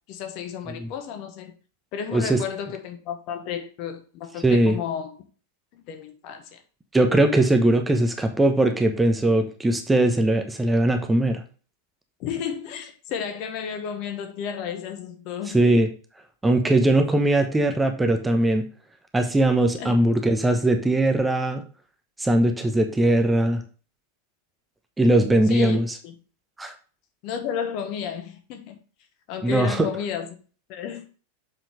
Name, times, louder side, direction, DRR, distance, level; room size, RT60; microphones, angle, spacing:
voice 1, 0.1-1.5 1.9-5.2 5.7-6.6 12.2-15.6 19.8-20.0 25.5-26.1 27.2-28.8 29.3-30.3 30.7-31.1, left 7 dB, 40° left, 1.3 m, -32 dB
voice 2, 4.4-4.8 6.9-11.4 15.5-15.9 16.4-18.6 19.1-21.6 22.2-23.6 25.0-25.9 26.6-26.7 29.4-29.9, right 1 dB, 10° right, 1.0 m, -20 dB
7.2 x 5.8 x 3.3 m
figure-of-eight pair, 90°, 0 cm